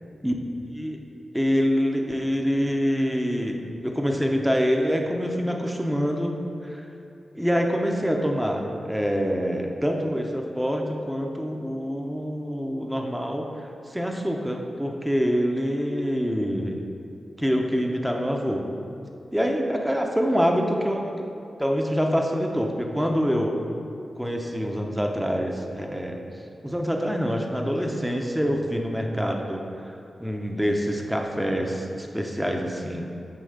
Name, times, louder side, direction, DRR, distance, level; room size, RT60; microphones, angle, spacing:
voice 1, 0.7-1.0 1.3-6.3 6.6-6.8 7.3-13.5 13.9-16.8 17.4-18.6 19.3-21.0 21.6-23.5 24.2-26.2 26.6-29.6 30.2-33.1, equal, 5° right, 2 dB, 0.8 m, -25 dB
9.1 x 3.1 x 6.6 m, 2.7 s
cardioid pair, 80°, 0 cm